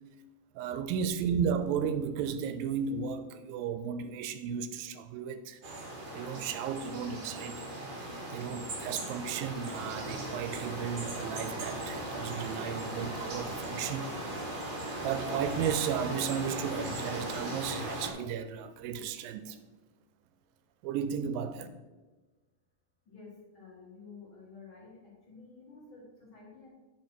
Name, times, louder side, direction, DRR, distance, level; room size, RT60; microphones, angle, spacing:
voice 1, 0.6-5.6 6.1-7.6 8.3-14.1 14.5-14.6 15.0-19.6 20.8-21.7, right 7 dB, 85° right, 10 dB, 2.2 m, -34 dB
sound 1, 5.6-18.1, right 1 dB, 55° right, 1.5 m, -38 dB
voice 2, 23.1-25.0 25.3-26.7, left 4 dB, 50° left, -5 dB, 1.7 m, -51 dB
9.4 x 5.1 x 4.4 m, 1.2 s
omnidirectional pair, 4.1 m